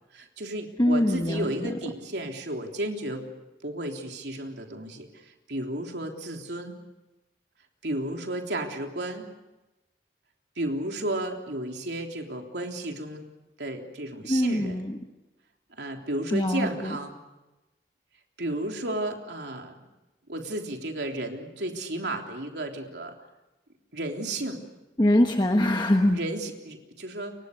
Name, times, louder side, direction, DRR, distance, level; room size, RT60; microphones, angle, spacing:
voice 1, 0.1-3.3 3.6-6.8 7.8-9.3 10.6-13.3 13.6-14.8 15.8-17.2 18.4-19.7 20.3-23.1 23.9-24.6 26.1-27.4, right 1 dB, 85° right, 2 dB, 3.5 m, -33 dB
voice 2, 0.8-1.7 14.3-15.0 16.3-16.9 25.0-26.2, left 1 dB, 25° left, 4 dB, 1.2 m, -23 dB
29.5 x 24.5 x 6.7 m, 1.0 s
head